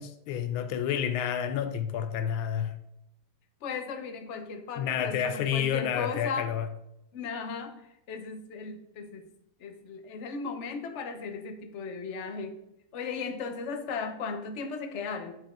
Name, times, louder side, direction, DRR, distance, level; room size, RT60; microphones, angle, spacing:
voice 1, 0.0-2.7 4.8-6.7, left 9 dB, 80° left, 1.4 m, -29 dB
voice 2, 3.6-6.5 7.1-9.2 9.6-12.6 12.9-15.4, left 5 dB, 55° left, 0.8 m, -36 dB
10.0 x 5.2 x 3.8 m
omnidirectional pair, 2.3 m